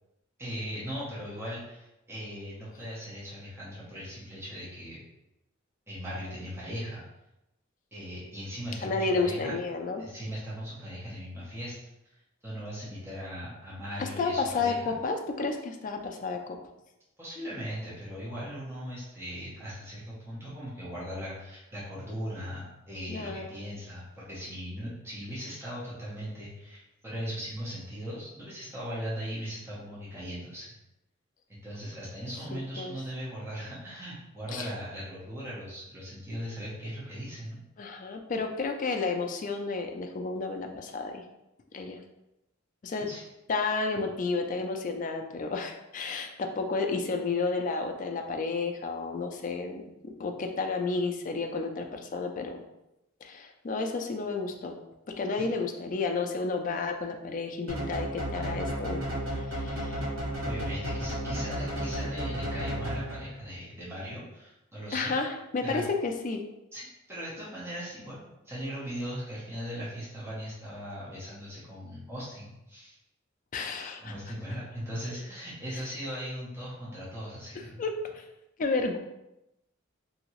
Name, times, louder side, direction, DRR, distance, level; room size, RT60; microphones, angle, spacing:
voice 1, 0.4-5.0 5.9-7.0 7.9-9.5 10.0-11.7 12.0-14.9 17.2-30.7 31.5-37.6 43.0-43.2 55.4-55.5 60.4-65.1 65.6-65.9 66.7-73.0 74.0-77.8, equal, 10° right, -9 dB, 0.8 m, -39 dB
voice 2, 8.8-10.0 14.0-16.6 23.1-23.5 32.5-32.9 34.5-34.7 37.8-41.2 41.7-42.0 42.8-43.1 43.5-49.8 50.2-52.6 53.2-54.7 55.2-59.0 59.3-60.1 64.9-66.4 73.5-74.1 77.8-78.2 78.6-79.0, left 4 dB, 40° left, 4 dB, 0.3 m, -31 dB
sound 1, 57.7-63.4, equal, 85° right, 1.0 m, -33 dB
2.9 x 2.7 x 2.9 m, 0.92 s
head